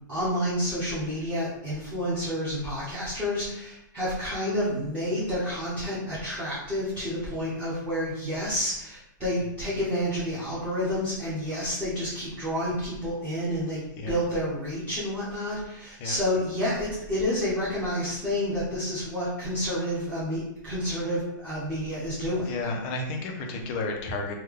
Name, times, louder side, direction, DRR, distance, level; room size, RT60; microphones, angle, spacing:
voice 1, 0.1-22.5, equal, 10° right, -11 dB, 0.8 m, -29 dB
voice 2, 22.5-24.3, left 2 dB, 25° left, 2 dB, 0.5 m, -32 dB
3.3 x 2.2 x 3.5 m, 0.84 s
supercardioid pair, 170°, 11 cm